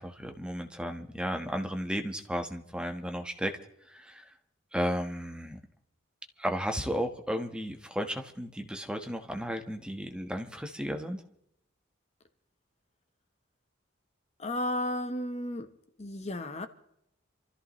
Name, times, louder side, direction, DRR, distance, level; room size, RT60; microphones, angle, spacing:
voice 1, 0.0-3.6 3.9-4.3 4.7-5.6 6.4-11.2, equal, 5° right, 1.3 m, -34 dB
voice 2, 14.4-15.7 16.0-16.7, left 1 dB, 35° left, 1.0 m, -33 dB
28.0 x 14.0 x 3.1 m
head